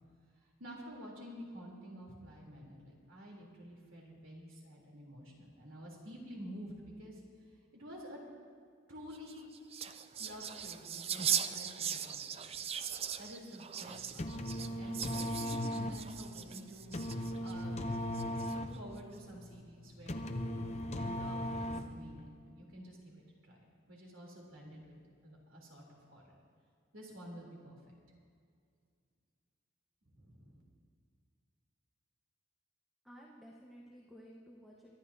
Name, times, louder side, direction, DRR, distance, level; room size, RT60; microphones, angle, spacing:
voice 1, 0.6-7.2 7.7-8.2 8.9-9.5 10.1-12.6 13.2-17.8 18.5-20.7 21.0-25.0 25.2-26.2 26.9-27.8 30.1-30.6, equal, 90° right, -2 dB, 3.5 m, -50 dB
sound 1, 9.1-17.5 18.1-18.8, right 8 dB, 30° right, 0.4 m, -39 dB
sound 2, 14.0-22.2, left 1 dB, 35° left, 0.7 m, -38 dB
voice 2, 33.0-35.0, equal, ahead, -3 dB, 1.2 m, -55 dB
24.5 x 12.5 x 2.8 m, 2.2 s
head